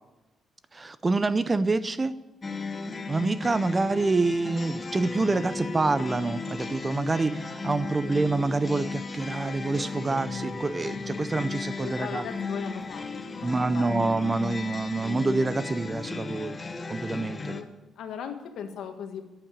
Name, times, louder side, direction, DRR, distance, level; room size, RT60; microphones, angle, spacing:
voice 1, 0.7-2.2 3.1-12.2 13.4-16.6 16.9-17.5, right 3 dB, 20° right, 14 dB, 0.5 m, -27 dB
sound 1, 2.4-17.6, left 4 dB, 20° left, 0.9 m, -35 dB
voice 2, 11.8-14.1 17.5-17.6 18.0-19.2, left 7 dB, 75° left, 6 dB, 1.6 m, -38 dB
12.0 x 8.9 x 8.9 m, 1.0 s
cardioid pair, 175°, 0 cm